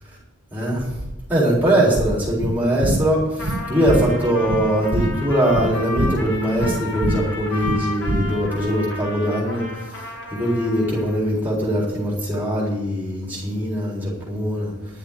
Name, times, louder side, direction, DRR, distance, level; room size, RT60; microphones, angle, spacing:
voice 1, 0.5-0.8 1.3-9.6 10.4-14.7, equal, 10° right, -6 dB, 4.1 m, -21 dB
sound 1, 2.4-8.7, right 1 dB, 85° right, 1.3 m, -26 dB
Trumpet, 3.3-11.2, left 2 dB, 55° left, 2.5 m, -33 dB
11.5 x 7.3 x 9.9 m, 0.98 s
head